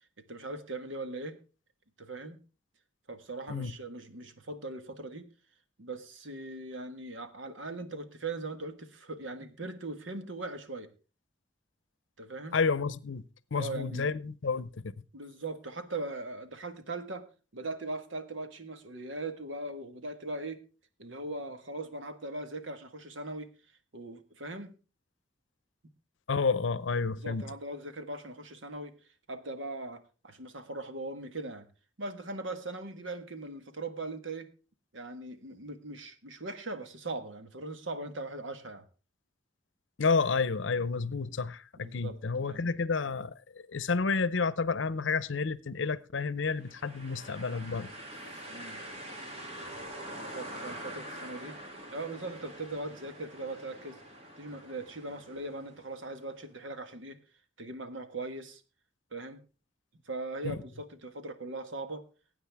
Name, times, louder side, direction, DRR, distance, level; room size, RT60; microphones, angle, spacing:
voice 1, 0.3-1.3 2.0-2.4 3.1-5.3 5.8-10.9 12.2-12.6 13.5-14.1 15.1-17.3 17.5-20.6 21.0-23.5 23.9-24.8 27.2-28.9 29.3-31.7 32.0-34.5 34.9-38.8 41.8-42.7 48.5-48.8 50.2-51.6 51.9-54.0 54.4-57.2 57.6-58.6 59.1-59.4 60.1-62.0, right 2 dB, 85° right, 1.5 m, -40 dB
voice 2, 12.5-13.2 13.5-14.7 26.3-27.5 40.0-47.9 60.4-60.6, left 4 dB, 80° left, 0.7 m, -30 dB
sound 1, 46.6-56.4, right 1 dB, 35° right, 2.4 m, -45 dB
19.0 x 9.1 x 3.5 m
head